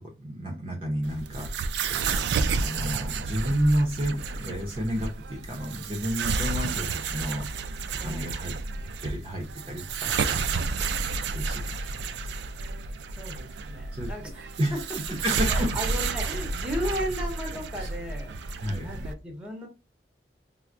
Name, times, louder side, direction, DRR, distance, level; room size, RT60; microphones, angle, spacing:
voice 1, 0.0-1.8 2.6-7.5 7.9-10.9 11.3-12.3 13.9-14.1 14.6-14.8 15.2-15.7 17.8-17.9 18.6-19.0, equal, 30° right, 0 dB, 0.6 m, -31 dB
sound 1, 1.0-19.1, right 4 dB, 75° right, 0.3 m, -31 dB
voice 2, 8.0-8.4 13.1-14.8 15.1-15.2 15.5-19.7, equal, 5° right, 1 dB, 0.8 m, -35 dB
4.4 x 2.0 x 2.4 m, 0.28 s
head